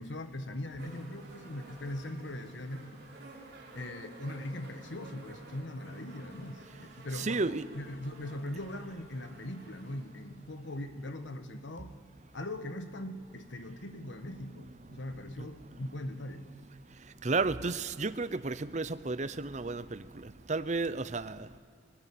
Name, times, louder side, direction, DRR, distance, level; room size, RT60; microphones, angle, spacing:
voice 1, 0.0-3.0 3.7-11.9 12.3-16.5, left 1 dB, 75° left, 8 dB, 1.3 m, -40 dB
sound 1, 0.8-11.9 12.8-12.9, right 2 dB, 55° right, 6.0 m, -53 dB
voice 2, 7.1-7.6 17.2-20.0 20.5-21.4, right 3 dB, 40° right, 14 dB, 0.7 m, -32 dB
23.5 x 19.5 x 8.5 m, 2.1 s
head